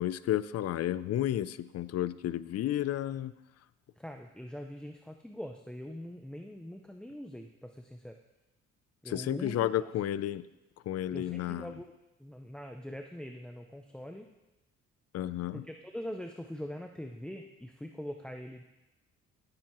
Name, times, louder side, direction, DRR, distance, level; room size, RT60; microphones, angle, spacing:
voice 1, 0.0-3.3 9.1-10.5 10.9-11.7 15.1-15.6, left 12 dB, 55° left, 17 dB, 0.5 m, -32 dB
voice 2, 4.0-8.2 9.0-9.9 11.1-11.9 12.2-14.3 15.6-18.6, equal, 5° left, 4 dB, 0.5 m, -43 dB
16.5 x 7.7 x 3.0 m, 1.0 s
cardioid pair, 90°, 30 cm